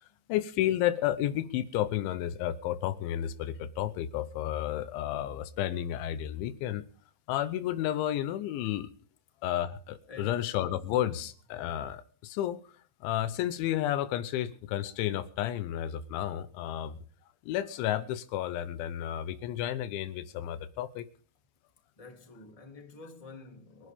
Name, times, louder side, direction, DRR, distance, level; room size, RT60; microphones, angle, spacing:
voice 1, 0.0-6.8 7.3-8.9 9.4-12.6 13.0-17.0 17.5-21.1, left 12 dB, 85° left, 3.3 m, -32 dB
voice 2, 10.1-10.5 22.0-23.9, left 3 dB, 10° left, 2.3 m, -49 dB
27.5 x 11.0 x 3.6 m
omnidirectional pair, 5.3 m